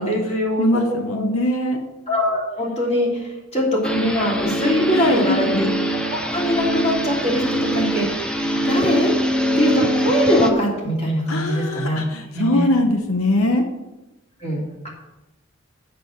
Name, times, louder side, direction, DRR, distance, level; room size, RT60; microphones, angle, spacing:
voice 1, 0.0-1.3 2.1-5.7 5.9-7.4 7.7-8.2 8.6-9.1 9.6-12.0 12.3-12.7 14.4-14.9, equal, 30° left, -3 dB, 3.1 m, -22 dB
voice 2, 0.6-1.8 4.9-5.5 11.3-13.6, left 1 dB, 85° left, 5 dB, 1.0 m, -22 dB
sound 1, 3.8-10.5, equal, 5° left, 0.7 m, -23 dB
7.6 x 6.9 x 8.0 m, 1.0 s
head